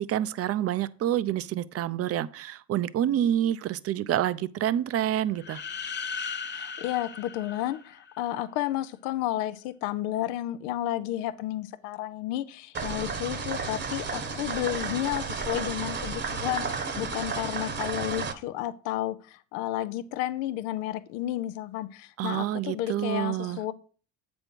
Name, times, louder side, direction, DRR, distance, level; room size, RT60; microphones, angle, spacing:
voice 1, 0.0-5.6 22.2-23.6, right 11 dB, 50° right, 0.5 m, -28 dB
sound 1, 5.4-8.3, left 5 dB, 35° left, 1.0 m, -37 dB
voice 2, 6.5-23.7, left 13 dB, 90° left, 0.5 m, -32 dB
sound 2, 12.7-18.3, right 5 dB, 35° right, 1.0 m, -32 dB
7.7 x 5.3 x 4.5 m
supercardioid pair, 70°, 30 cm